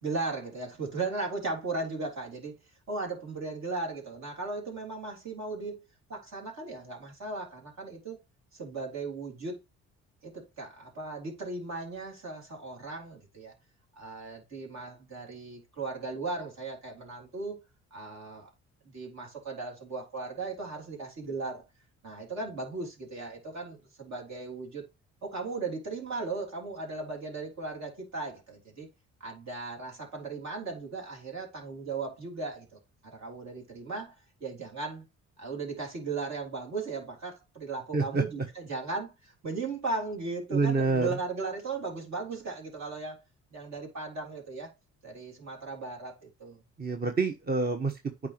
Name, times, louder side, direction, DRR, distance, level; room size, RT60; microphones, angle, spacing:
voice 1, 0.0-2.6 2.9-5.8 6.1-8.2 8.5-9.6 10.2-13.5 14.0-17.6 17.9-18.5 18.9-21.6 22.0-24.9 25.2-28.9 29.2-32.7 33.0-34.2 34.4-35.1 35.4-43.2 43.5-44.7 45.0-46.6, right 3 dB, 60° right, 3.5 m, -37 dB
voice 2, 37.9-38.2 40.5-41.2 46.8-48.3, right 4 dB, 30° right, 1.2 m, -27 dB
8.8 x 5.1 x 3.0 m
supercardioid pair, 60°, 32 cm